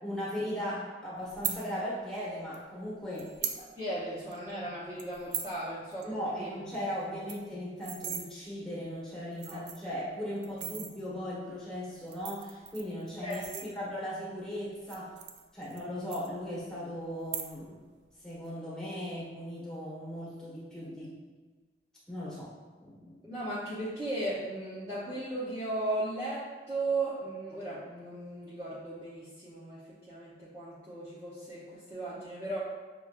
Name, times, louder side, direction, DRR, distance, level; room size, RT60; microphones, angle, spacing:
voice 1, 0.0-3.3 6.0-15.1 15.5-17.8 18.2-21.2 22.1-22.5 22.8-23.2, equal, 5° left, -9 dB, 1.3 m, -38 dB
sound 1, 1.3-1.6 2.5-2.6 3.2-3.6 4.0-4.1 4.3-4.5 5.0-5.5 5.9-6.0 6.3-6.4 6.7-6.8 7.1-8.2 8.9-9.0 9.3-9.9 10.4-10.9 11.9-14.1 14.8-15.8 16.1-16.7 17.2-17.8 18.1-18.5, right 8 dB, 70° right, 0.4 m, -38 dB
voice 2, 3.6-6.5 9.5-9.6 13.2-13.6 23.2-29.8 30.1-32.6, right 2 dB, 15° right, -11 dB, 0.7 m, -36 dB
6.1 x 2.9 x 2.4 m, 1.3 s
head